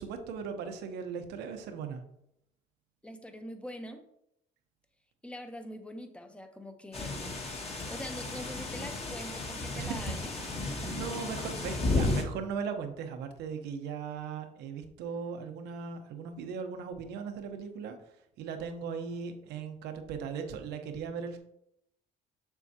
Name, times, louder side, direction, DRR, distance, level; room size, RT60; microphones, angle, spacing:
voice 1, 0.0-2.0 9.7-10.1 10.5-18.1 18.4-21.4, right 6 dB, 85° right, 6 dB, 1.0 m, -38 dB
voice 2, 3.0-4.1 5.2-7.4 7.9-10.3 10.7-11.0, equal, 5° left, 7 dB, 0.9 m, -43 dB
sound 1, 6.9-12.2, left 2 dB, 35° left, 1.9 m, -33 dB
7.0 x 7.0 x 2.9 m, 0.78 s
cardioid pair, 110°, 17 cm